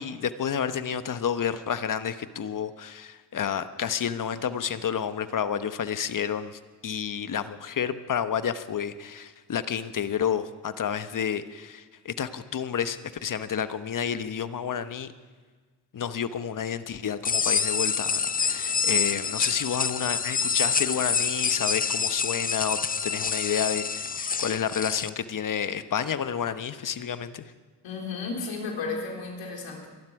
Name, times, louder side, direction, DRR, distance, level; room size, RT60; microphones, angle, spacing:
voice 1, 0.0-15.1 15.9-27.5, left 8 dB, 40° left, 12 dB, 1.1 m, -30 dB
sound 1, 17.2-25.1, left 6 dB, 20° left, 0.5 m, -27 dB
voice 2, 27.8-29.9, left 4 dB, 65° left, 1 dB, 3.9 m, -33 dB
22.5 x 12.0 x 4.9 m, 1.4 s
supercardioid pair, 60°, 48 cm